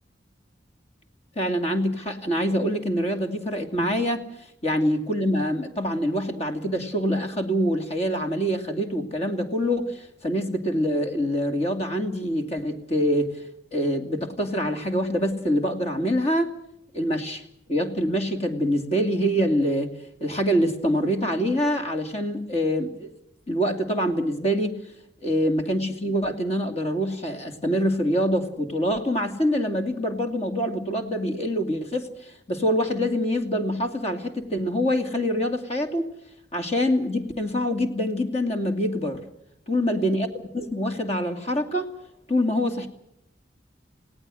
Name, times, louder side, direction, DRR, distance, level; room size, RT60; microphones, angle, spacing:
voice 1, 1.4-4.2 4.6-13.4 13.7-16.5 16.9-17.4 17.7-19.9 20.2-23.1 23.5-24.8 25.2-36.1 36.5-39.3 39.7-40.3 40.5-41.9 42.3-42.9, equal, 35° left, 5 dB, 2.7 m, -25 dB
30.0 x 18.0 x 6.4 m, 0.76 s
head